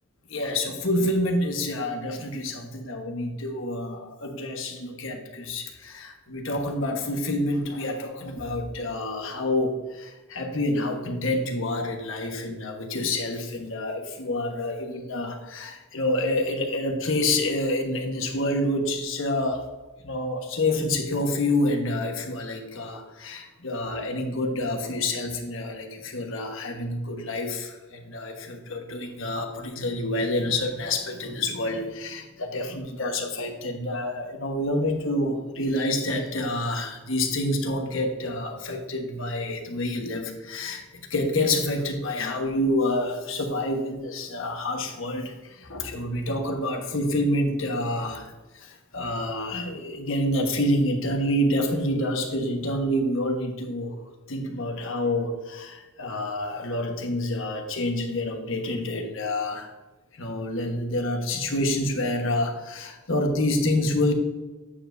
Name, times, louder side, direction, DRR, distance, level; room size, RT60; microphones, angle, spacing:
voice 1, 0.3-19.7 20.0-54.0 54.3-59.7 60.2-64.1, left 1 dB, 65° left, 3 dB, 1.2 m, -28 dB
8.5 x 7.3 x 2.6 m, 1.2 s
head